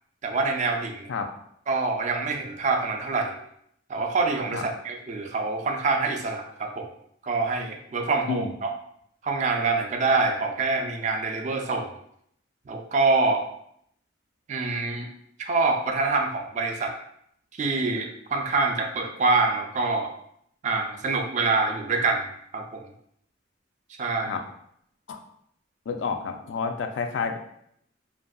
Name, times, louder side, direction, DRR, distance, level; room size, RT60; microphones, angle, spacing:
voice 1, 0.2-1.1 1.7-3.3 3.9-6.9 7.2-8.7 9.2-11.9 12.7-13.4 14.5-15.1 15.4-17.0 17.6-20.1 20.6-22.2 22.5-22.8 24.0-24.3, right 3 dB, 40° right, 3 dB, 0.3 m, -25 dB
voice 2, 25.9-27.4, left 5 dB, 75° left, 6 dB, 0.3 m, -29 dB
2.7 x 2.5 x 2.2 m, 0.70 s
head